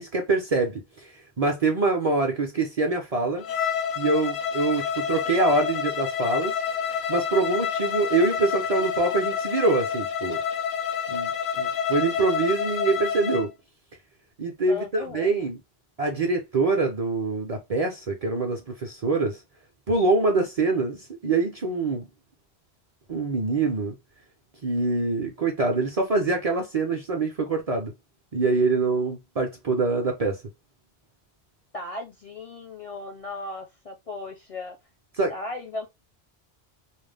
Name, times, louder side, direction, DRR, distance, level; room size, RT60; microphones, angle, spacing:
voice 1, 0.0-3.5 4.0-6.6 6.9-10.4 11.1-13.5 14.4-15.6 16.0-19.4 19.9-22.1 23.1-24.0 24.6-27.9 28.3-30.4 35.2-35.3, right 3 dB, 45° right, 0.5 m, -25 dB
Bowed string instrument, 3.4-13.5, left 7 dB, 80° left, 0.8 m, -28 dB
voice 2, 14.7-15.4 31.7-34.8 35.3-35.9, left 2 dB, 45° left, 0.5 m, -36 dB
2.4 x 2.0 x 3.2 m
omnidirectional pair, 1.1 m